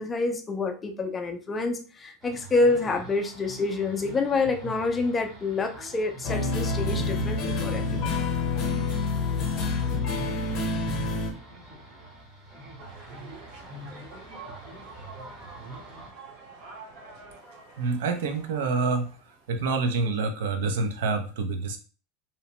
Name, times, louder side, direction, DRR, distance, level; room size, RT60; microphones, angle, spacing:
voice 1, 0.0-8.0, left 3 dB, 15° left, 5 dB, 0.3 m, -27 dB
sound 1, 2.2-16.1, right 3 dB, 20° right, 0.7 m, -43 dB
sound 2, 6.2-11.3, left 3 dB, 35° left, 0.7 m, -27 dB
sound 3, 12.8-19.6, right 3 dB, 50° right, 0.8 m, -47 dB
voice 2, 17.8-19.2 19.5-21.8, right 4 dB, 90° right, 6 dB, 0.5 m, -27 dB
2.8 x 2.1 x 2.8 m, 0.36 s
supercardioid pair, 165°, 0 cm